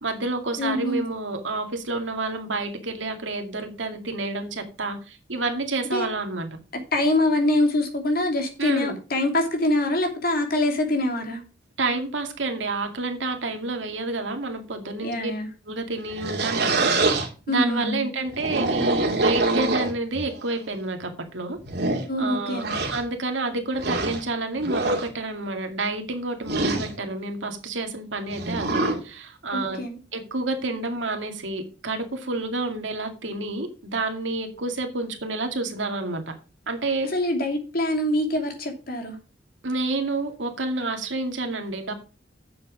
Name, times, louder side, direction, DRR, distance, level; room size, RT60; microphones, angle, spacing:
voice 1, 0.0-6.6 8.6-9.0 11.8-15.3 15.7-21.6 22.2-22.6 22.9-29.8 30.1-36.4 36.7-37.1 39.6-41.9, right 2 dB, 85° right, 2.2 m, -29 dB
voice 2, 0.6-1.1 5.9-6.1 6.9-11.4 15.0-15.5 17.5-18.1 22.1-22.8 29.5-30.0 37.1-39.1, left 1 dB, 50° left, 2.8 m, -24 dB
sound 1, 16.0-17.3 18.3-20.3 21.0-21.1 21.6-22.1 22.6-23.0 23.8-24.2 24.6-25.1 26.4-26.9 28.3-29.0, right 2 dB, 60° right, 2.5 m, -25 dB
8.6 x 7.3 x 5.0 m
head